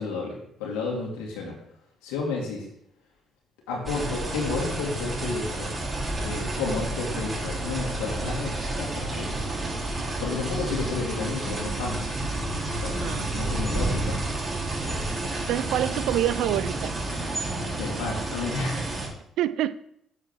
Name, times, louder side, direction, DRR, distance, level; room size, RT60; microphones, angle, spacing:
voice 1, 0.0-1.6 2.0-2.7 3.7-5.7 6.2-9.5 10.2-12.0 12.7-14.2 17.8-18.9, left 4 dB, 90° left, -1 dB, 2.6 m, -31 dB
sound 1, 3.9-19.1, right 2 dB, 30° right, 3.7 m, -30 dB
voice 2, 13.0-13.5 15.5-16.9 19.4-19.7, right 12 dB, 80° right, 17 dB, 0.4 m, -27 dB
7.6 x 4.8 x 6.1 m, 0.73 s
supercardioid pair, 55°, 0 cm